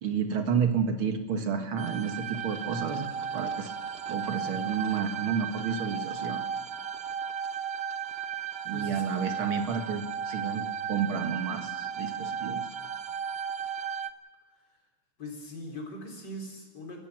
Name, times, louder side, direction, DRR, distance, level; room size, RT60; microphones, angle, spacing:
voice 1, 0.0-3.7 4.1-6.4 8.6-12.7, right 6 dB, 80° right, 6 dB, 2.5 m, -31 dB
sound 1, 1.8-14.1, right 7 dB, 55° right, 0.6 m, -35 dB
voice 2, 8.7-9.4 15.2-17.1, equal, 55° left, 1 dB, 4.4 m, -41 dB
30.0 x 15.5 x 6.1 m, 1.4 s
omnidirectional pair, 2.3 m